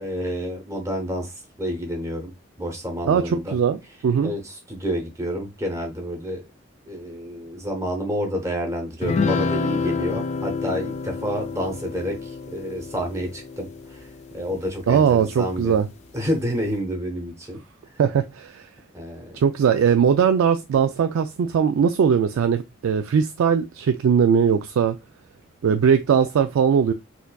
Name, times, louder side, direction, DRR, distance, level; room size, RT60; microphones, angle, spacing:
voice 1, 0.0-1.3 1.6-2.3 2.6-3.5 4.2-6.4 6.9-14.0 14.3-15.8 16.1-17.6 18.9-19.2, equal, 15° right, 0.9 m, -29 dB
voice 2, 3.1-4.3 14.9-15.9 18.0-18.7 19.3-25.0 25.6-26.9, right 7 dB, 90° right, 0.3 m, -20 dB
sound 1, 9.0-14.7, left 4 dB, 35° left, 0.3 m, -28 dB
4.3 x 2.6 x 2.2 m
head